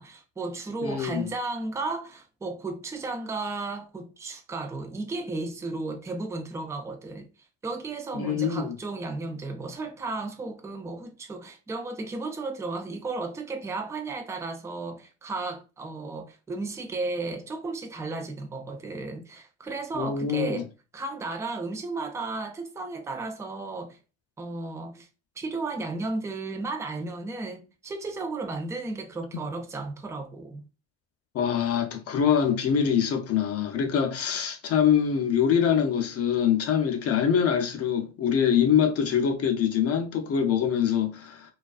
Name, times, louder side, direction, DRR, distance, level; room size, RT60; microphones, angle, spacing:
voice 1, 0.0-7.3 7.6-24.0 24.4-25.1 25.4-30.6, right 3 dB, 10° right, 0.4 m, -34 dB
voice 2, 0.8-1.2 8.1-8.7 19.9-20.6 31.3-41.5, left 8 dB, 40° left, 0.6 m, -24 dB
2.3 x 2.2 x 2.3 m
hypercardioid pair, 65°, 36 cm